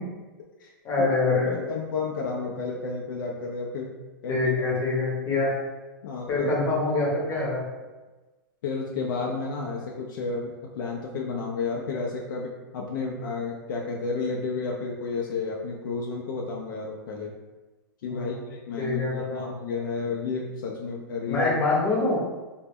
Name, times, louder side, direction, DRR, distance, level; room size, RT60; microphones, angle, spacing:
voice 1, 0.8-1.7 4.3-5.5 6.3-7.6 18.1-18.4 18.8-19.4 21.3-22.2, left 3 dB, 25° left, -4 dB, 0.7 m, -25 dB
voice 2, 1.4-3.9 4.2-4.6 6.0-6.5 8.6-17.3 18.0-21.5, left 4 dB, 65° left, -1 dB, 0.4 m, -31 dB
2.1 x 2.1 x 3.4 m, 1.2 s
hypercardioid pair, 140°, 12 cm